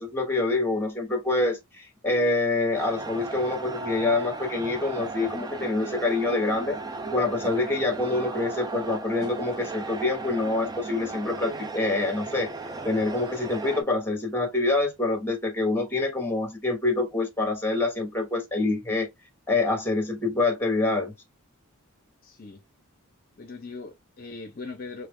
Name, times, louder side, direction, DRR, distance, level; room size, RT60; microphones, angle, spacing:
voice 1, 0.0-6.8 7.1-12.5 12.8-19.1 19.5-21.1, left 2 dB, 10° left, 1.0 m, -26 dB
sound 1, 2.7-13.8, right 3 dB, 20° right, 0.3 m, -36 dB
voice 2, 22.2-22.6 23.4-25.1, left 3 dB, 40° left, 0.6 m, -40 dB
3.4 x 2.4 x 3.5 m
head